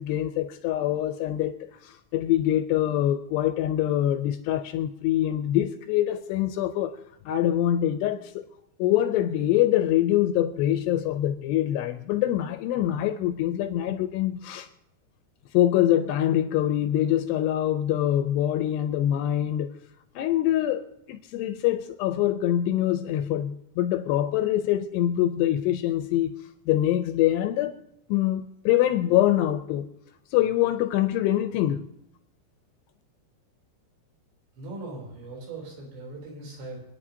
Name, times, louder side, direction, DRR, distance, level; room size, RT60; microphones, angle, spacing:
voice 1, 0.0-7.0 7.3-8.4 8.8-14.7 15.5-19.7 20.2-20.8 21.1-26.4 26.7-27.7 28.1-29.9 30.3-31.8, left 12 dB, 80° left, 2.5 m, -24 dB
voice 2, 34.6-36.8, right 2 dB, 75° right, 5.7 m, -39 dB
28.0 x 9.6 x 2.8 m
omnidirectional pair, 5.1 m